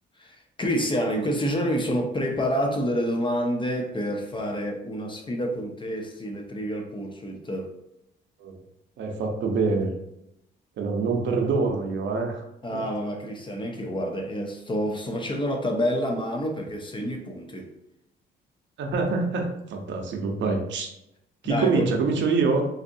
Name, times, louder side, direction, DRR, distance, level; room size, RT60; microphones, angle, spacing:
voice 1, 0.2-7.7 12.6-17.7 21.4-21.9, equal, 25° left, 3 dB, 0.6 m, -28 dB
voice 2, 9.0-9.9 10.8-12.4 12.7-12.8 18.8-20.9 21.4-22.6, right 4 dB, 70° right, 2 dB, 0.7 m, -25 dB
4.0 x 2.6 x 2.6 m, 0.82 s
cardioid pair, 90°, 20 cm